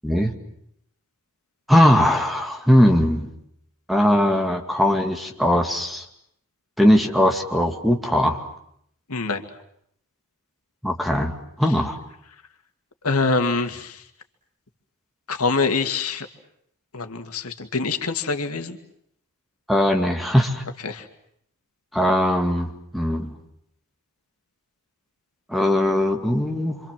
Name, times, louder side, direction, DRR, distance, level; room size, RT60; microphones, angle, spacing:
voice 1, 1.7-3.3 3.9-6.0 6.8-8.5 10.8-12.0 19.7-20.6 21.9-23.3 25.5-26.8, equal, ahead, 3 dB, 2.5 m, -20 dB
voice 2, 9.1-9.4 13.0-14.0 15.3-16.3 16.9-18.8 20.8-21.1, left 4 dB, 85° left, 6 dB, 2.3 m, -24 dB
29.0 x 25.5 x 7.6 m, 0.71 s
head